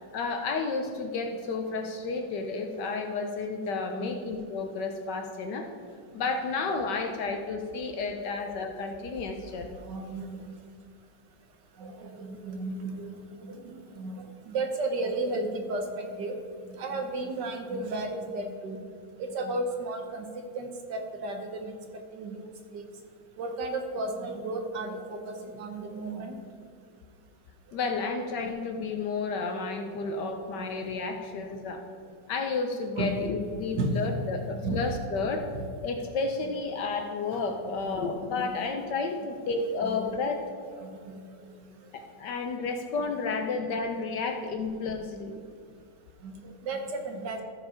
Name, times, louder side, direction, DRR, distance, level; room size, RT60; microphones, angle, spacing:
voice 1, 0.1-5.7 6.1-9.8 27.7-31.8 32.3-35.5 35.8-40.4 41.9-45.4, left 4 dB, 65° left, 5 dB, 1.2 m, -31 dB
voice 2, 7.9-8.4 9.9-10.4 11.8-16.4 16.8-18.8 19.2-20.2 20.5-21.7 22.1-22.8 23.4-26.4 30.1-30.2 30.6-30.9 33.0-33.1 33.7-34.9 35.6-35.7 37.8-38.1 38.4-38.8 39.8-40.1 40.8-41.2 46.2-47.4, right 2 dB, 60° right, 4 dB, 1.4 m, -34 dB
14.0 x 4.9 x 4.9 m, 2.2 s
omnidirectional pair, 2.3 m